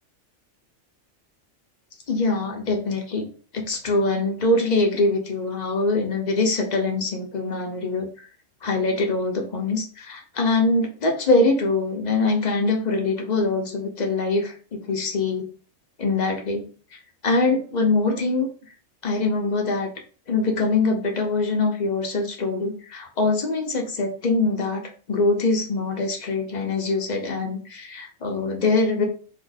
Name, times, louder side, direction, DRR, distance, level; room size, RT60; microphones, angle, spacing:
voice 1, 2.1-3.3 3.5-8.3 8.6-15.5 16.0-16.6 16.9-18.5 19.0-19.9 20.3-29.1, left 3 dB, 45° left, 2 dB, 0.6 m, -23 dB
2.7 x 2.6 x 3.9 m, 0.40 s
omnidirectional pair, 1.3 m